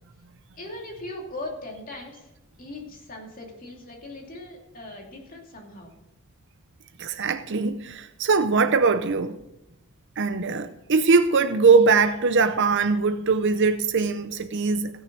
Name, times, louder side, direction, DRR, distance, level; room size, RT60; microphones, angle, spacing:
voice 1, 0.6-2.3 2.6-6.0, left 2 dB, 40° left, 2.7 m, -39 dB
voice 2, 7.0-9.4 10.2-15.0, right 4 dB, 55° right, 0.6 m, -21 dB
16.5 x 6.4 x 6.1 m
head